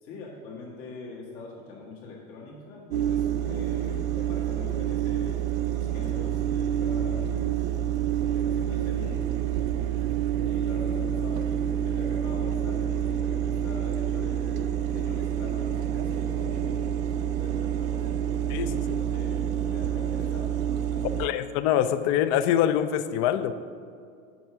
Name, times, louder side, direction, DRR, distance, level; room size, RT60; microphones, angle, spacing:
voice 1, 0.0-7.3 7.5-7.7 8.2-9.3 10.4-14.5 14.9-16.9 17.2-18.2 18.9-20.5 20.9-21.3, left 3 dB, 60° left, -3 dB, 1.7 m, -43 dB
sound 1, 2.9-21.3, right 10 dB, 70° right, 0.6 m, -28 dB
voice 2, 18.5-19.0 21.2-23.5, left 10 dB, 40° left, 12 dB, 0.4 m, -25 dB
6.1 x 4.6 x 5.7 m, 2.2 s
hypercardioid pair, 100°, 41 cm